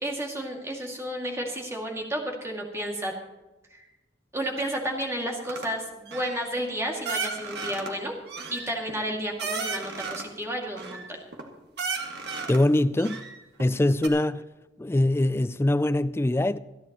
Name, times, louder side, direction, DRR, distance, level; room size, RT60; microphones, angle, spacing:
voice 1, 0.0-3.1 3.7-3.8 4.3-8.1 8.5-11.2, equal, 15° right, 2.2 m, -32 dB
sound 1, 5.4-5.7 6.1-6.4 7.0-7.9 8.3-10.3 10.8-11.4 11.8-12.6 13.0-13.7 14.0-14.1, right 4 dB, 60° right, 1.9 m, -34 dB
voice 2, 12.5-13.2 13.6-14.4 14.8-16.6, left 1 dB, 15° left, 0.3 m, -23 dB
26.5 x 10.5 x 3.0 m
head